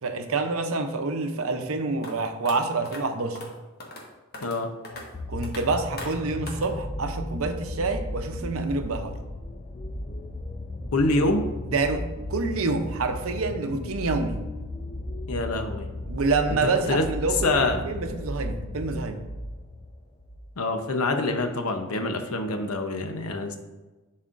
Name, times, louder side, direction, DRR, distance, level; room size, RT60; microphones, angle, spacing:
voice 1, 0.0-3.4 5.3-9.2 11.6-14.4 16.1-19.2, right 3 dB, 75° right, 6 dB, 0.7 m, -27 dB
sound 1, 2.0-2.1 2.4-2.5 2.8-3.0 3.3-3.5 3.8-4.0 4.3-4.6 4.8-5.0 5.4-5.6 6.0-6.1 6.5-6.7, left 2 dB, 45° left, 1.2 m, -38 dB
sound 2, 4.9-20.5 21.3-21.4, left 1 dB, 25° left, 0.4 m, -35 dB
voice 2, 10.9-11.4 15.3-15.9 16.9-17.1 17.4-17.8 20.6-23.6, left 2 dB, 85° left, 6 dB, 0.8 m, -25 dB
11.0 x 4.2 x 2.5 m, 1.2 s
head